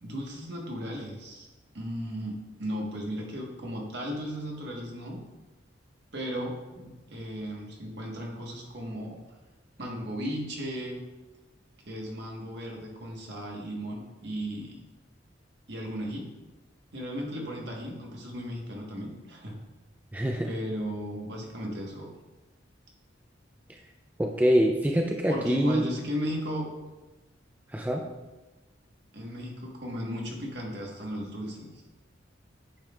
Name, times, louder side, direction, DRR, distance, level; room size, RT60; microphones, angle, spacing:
voice 1, 0.0-1.5 1.7-5.2 6.1-9.2 9.8-11.0 11.9-14.7 15.7-16.3 16.9-19.5 20.4-22.1 25.3-26.7 29.1-31.8, equal, 60° right, -1 dB, 1.4 m, -35 dB
voice 2, 20.1-20.5 24.2-25.8 27.7-28.1, equal, 10° right, 1 dB, 0.3 m, -25 dB
8.8 x 5.3 x 2.4 m, 1.2 s
head